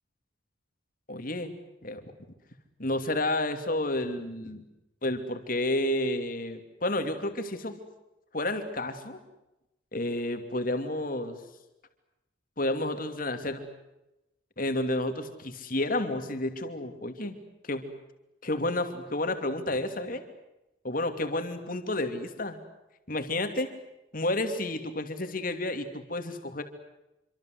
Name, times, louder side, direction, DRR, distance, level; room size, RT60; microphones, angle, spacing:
voice 1, 1.1-2.0 2.8-4.6 5.0-7.8 8.3-9.2 9.9-11.4 12.6-13.6 14.6-17.4 17.6-17.9 18.4-20.2 20.8-22.6 23.1-23.7 24.1-26.6, left 1 dB, 45° left, 7 dB, 2.8 m, -30 dB
27.0 x 25.0 x 8.0 m, 0.94 s
head